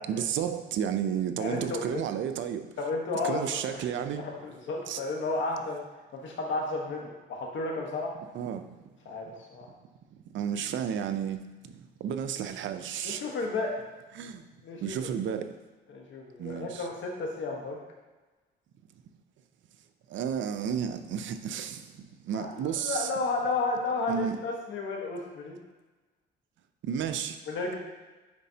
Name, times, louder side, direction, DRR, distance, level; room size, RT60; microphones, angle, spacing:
voice 1, 0.1-2.7 3.2-4.2 4.9-5.0 8.3-8.7 10.3-13.2 14.2-14.4 14.8-15.5 16.4-16.9 20.1-23.1 24.1-24.4 26.8-27.4, right 8 dB, 70° right, 9 dB, 0.5 m, -32 dB
voice 2, 1.4-2.0 2.8-3.8 4.1-8.1 9.0-9.7 13.0-13.8 14.6-15.3 15.9-17.8 22.3-25.6 27.5-27.7, left 3 dB, 70° left, 0 dB, 1.3 m, -33 dB
9.6 x 4.1 x 2.8 m, 1.2 s
cardioid pair, 90°, 20 cm